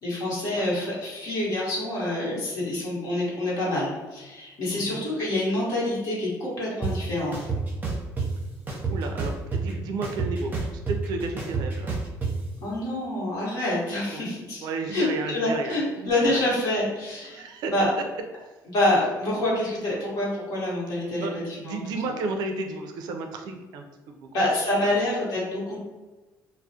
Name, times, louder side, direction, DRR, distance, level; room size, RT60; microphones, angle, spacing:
voice 1, 0.0-7.4 12.6-14.6 14.9-17.4 17.7-17.9 18.7-21.3 21.6-21.8 24.3-25.8, left 1 dB, 65° left, -6 dB, 1.0 m, -26 dB
voice 2, 4.7-5.1 8.9-11.9 14.1-14.2 14.6-16.5 17.3-17.9 21.2-24.3, right 3 dB, 70° right, 4 dB, 0.3 m, -33 dB
sound 1, 6.8-6.9 7.3-8.3 8.7-9.7 10.0-12.3, right 4 dB, 25° right, 0.6 m, -28 dB
2.3 x 2.0 x 2.6 m, 1.2 s
cardioid pair, 95°, 7 cm